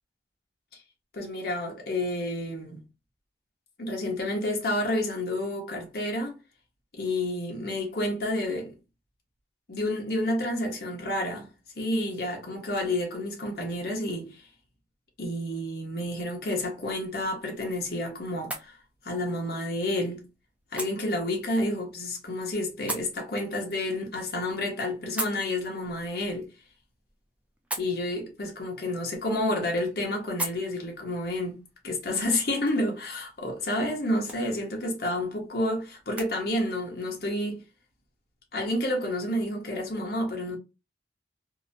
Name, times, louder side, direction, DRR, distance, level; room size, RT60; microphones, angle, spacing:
voice 1, 1.1-2.8 3.8-6.4 6.9-8.7 9.7-11.5 11.8-14.5 15.2-18.8 19.0-20.2 20.7-26.5 27.8-31.6 31.8-37.6 38.5-40.6, left 1 dB, 55° left, 0.8 m, -30 dB
sound 1, 16.8-36.3, right 1 dB, 5° right, 0.4 m, -43 dB
2.7 x 2.1 x 2.6 m
head